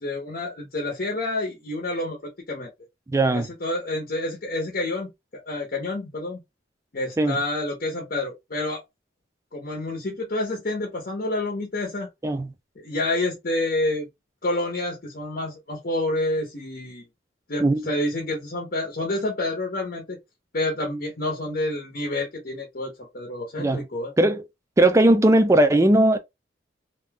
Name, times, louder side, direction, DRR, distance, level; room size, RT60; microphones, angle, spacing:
voice 1, 0.0-2.2 2.5-2.7 3.3-6.4 6.9-8.8 9.5-12.1 12.8-14.1 14.4-17.1 17.5-20.2 20.5-24.1, left 2 dB, 50° left, 0.8 m, -28 dB
voice 2, 3.1-3.5 7.2-7.4 12.2-12.5 17.6-17.8 23.6-23.9 24.2-24.4 24.8-26.2, right 1 dB, 15° right, 0.3 m, -18 dB
2.6 x 2.2 x 3.4 m
head